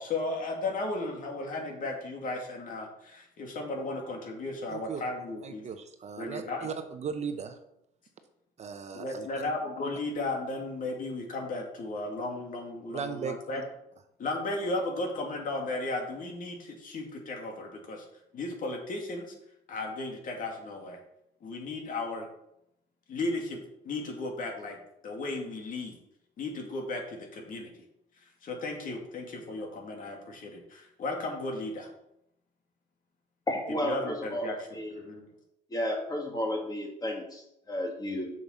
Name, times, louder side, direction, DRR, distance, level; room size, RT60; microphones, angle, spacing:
voice 1, 0.0-5.7 6.2-6.7 8.9-13.6 14.2-18.1 18.3-19.3 19.7-21.0 21.4-22.3 23.1-23.6 23.8-24.8 25.0-25.9 26.4-27.7 28.4-31.9 33.8-34.6 34.9-35.4, left 2 dB, 50° left, 2 dB, 2.4 m, -35 dB
voice 2, 4.7-5.0 5.4-7.6 8.6-9.3 12.9-13.3, right 6 dB, 40° right, 8 dB, 0.9 m, -37 dB
voice 3, 33.5-35.0 35.7-38.3, left 1 dB, 20° left, 1 dB, 2.6 m, -33 dB
6.9 x 6.5 x 5.6 m, 0.80 s
cardioid pair, 110°, 17 cm